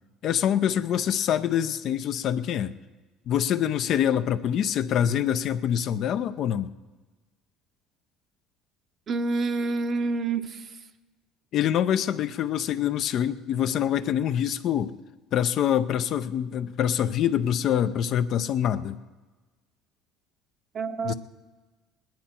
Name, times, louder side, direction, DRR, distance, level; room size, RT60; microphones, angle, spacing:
voice 1, 0.2-2.7 3.3-6.7 11.5-14.9 15.3-19.0 21.0-21.1, left 10 dB, 60° left, 0.6 m, -25 dB
voice 2, 9.1-10.6 20.7-21.1, right 3 dB, 45° right, 0.9 m, -27 dB
20.0 x 10.5 x 4.4 m
supercardioid pair, 85°, 0 cm